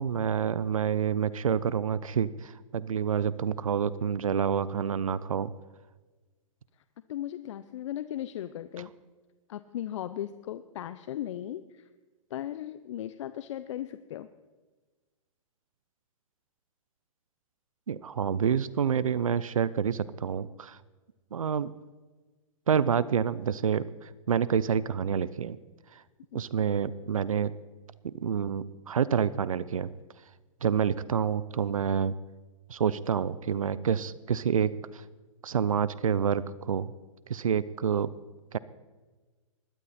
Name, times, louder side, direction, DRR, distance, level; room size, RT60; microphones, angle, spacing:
voice 1, 0.0-5.5 17.9-20.8 21.3-21.7 22.7-25.6 25.9-26.0 26.3-27.5 28.0-29.9 30.6-32.1 32.7-35.0 35.4-36.9 37.3-38.1 38.5-38.6, right 7 dB, 90° right, 18 dB, 0.7 m, -28 dB
voice 2, 7.1-8.9 9.5-11.9 12.3-14.3 26.3-26.4, left 12 dB, 65° left, 13 dB, 0.8 m, -37 dB
21.0 x 12.5 x 4.3 m, 1.3 s
hypercardioid pair, 125°, 17 cm